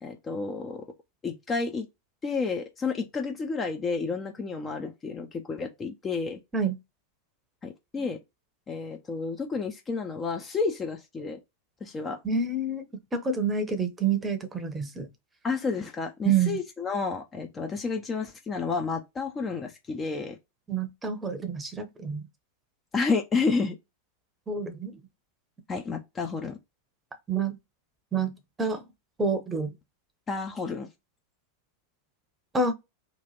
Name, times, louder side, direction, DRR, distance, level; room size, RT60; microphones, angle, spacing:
voice 1, 0.0-0.9 1.2-1.9 2.2-6.4 7.6-8.2 8.7-11.4 11.8-12.2 15.4-20.4 22.9-23.8 25.7-26.6 30.3-30.9, left 4 dB, 20° left, 0.6 m, -30 dB
voice 2, 12.2-12.8 13.1-15.1 16.2-16.6 20.7-22.2 24.5-25.0 27.3-27.6 28.1-28.3 28.6-28.8 29.2-29.7 32.5-32.7, right 4 dB, 15° right, 0.8 m, -27 dB
3.1 x 2.4 x 4.0 m
figure-of-eight pair, 90°, 0 cm